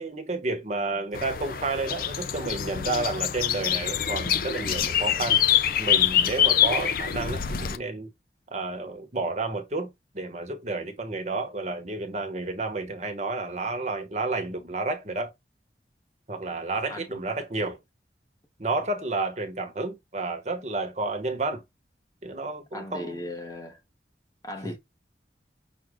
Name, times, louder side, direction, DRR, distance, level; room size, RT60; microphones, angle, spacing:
voice 1, 0.0-5.4 5.8-8.1 8.5-15.3 16.3-17.8 18.6-21.6 22.2-23.2 24.6-24.7, right 3 dB, 40° right, 1.0 m, -31 dB
sound 1, 1.1-7.8, left 10 dB, 55° left, 0.4 m, -25 dB
voice 2, 16.9-17.2 22.7-23.8 24.4-24.8, left 1 dB, 20° left, 0.8 m, -37 dB
6.2 x 2.3 x 3.5 m
head